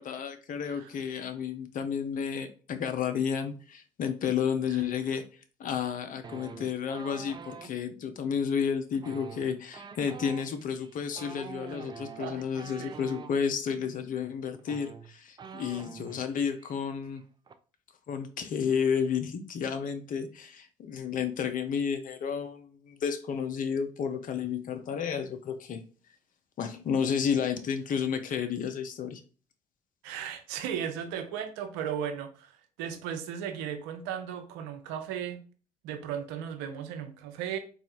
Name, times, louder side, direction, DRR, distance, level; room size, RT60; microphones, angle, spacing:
voice 1, 0.0-5.2 5.6-17.2 18.1-25.8 26.6-29.2, left 7 dB, 45° left, 8 dB, 0.6 m, -31 dB
sound 1, 6.2-7.7 8.9-13.3 14.3-14.4 14.6-16.2 16.5-16.8 17.0-17.5, right 5 dB, 25° right, 0.4 m, -45 dB
voice 2, 12.2-13.0 15.4-15.6 30.0-32.5 32.8-35.4 35.8-37.6, right 8 dB, 70° right, 7 dB, 0.6 m, -36 dB
4.0 x 2.3 x 2.8 m, 0.38 s
hypercardioid pair, 50°, 19 cm